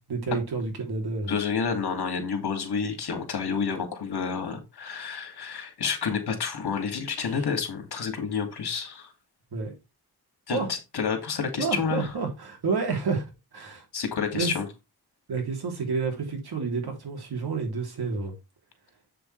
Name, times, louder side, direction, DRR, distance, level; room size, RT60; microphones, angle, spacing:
voice 1, 0.1-1.3 7.2-7.5 9.5-9.8 10.5-10.7 11.6-13.3 13.5-13.8 14.3-14.5 15.3-18.3, right 4 dB, 75° right, 3.4 m, -29 dB
voice 2, 1.3-9.1 10.5-12.1 13.9-14.6, left 6 dB, 80° left, 2.6 m, -29 dB
7.9 x 7.0 x 3.3 m
wide cardioid pair, 145°, 39 cm